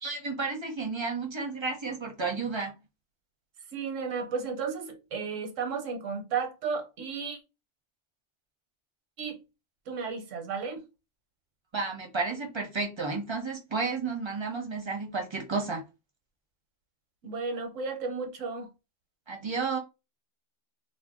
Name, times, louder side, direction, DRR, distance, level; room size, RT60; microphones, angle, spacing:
voice 1, 0.0-2.8 11.7-15.8 19.3-19.8, right 4 dB, 30° right, 0.5 m, -32 dB
voice 2, 3.7-7.4 9.2-9.4 9.9-10.8 17.2-18.7, right 5 dB, 80° right, 1.1 m, -33 dB
2.6 x 2.1 x 3.5 m
omnidirectional pair, 1.3 m